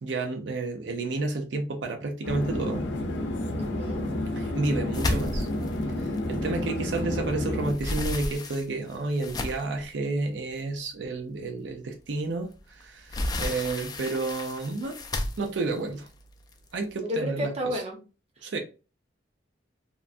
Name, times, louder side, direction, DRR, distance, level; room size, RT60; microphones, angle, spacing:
voice 1, 0.0-2.8 4.4-5.5 6.0-15.0 15.4-16.1 16.7-17.8 18.4-18.6, right 3 dB, 80° right, 0.5 m, -31 dB
sound 1, 2.2-7.7, left 1 dB, 85° left, 0.6 m, -30 dB
voice 2, 3.6-4.1 17.0-18.0, left 1 dB, 35° right, 0.7 m, -31 dB
sound 2, 4.9-7.1 7.4-9.8 10.5-10.6 11.0-11.2 12.5-16.8, left 1 dB, 20° left, 0.3 m, -33 dB
3.0 x 2.2 x 2.4 m
head